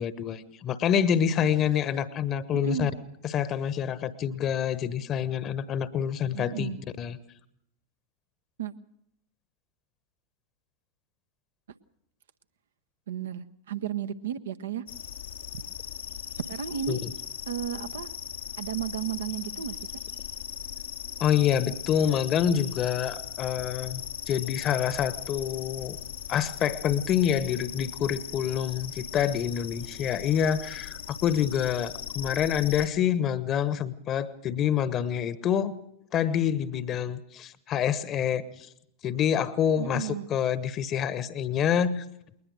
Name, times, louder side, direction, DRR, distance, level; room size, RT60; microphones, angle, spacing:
voice 1, 0.0-2.9 3.2-6.7 7.0-7.2 16.9-17.1 21.2-26.0 26.3-35.7 36.1-38.7 39.0-42.0, left 9 dB, 30° left, 15 dB, 1.1 m, -27 dB
voice 2, 2.5-2.9 6.3-6.8 8.6-8.7 13.1-14.8 16.4-17.0 17.5-18.1 18.6-19.8 39.8-40.3, right 9 dB, 65° right, 10 dB, 0.8 m, -33 dB
sound 1, 14.9-32.9, left 9 dB, 65° left, 1.2 m, -39 dB
21.0 x 19.5 x 6.4 m, 0.78 s
figure-of-eight pair, 90°, 0 cm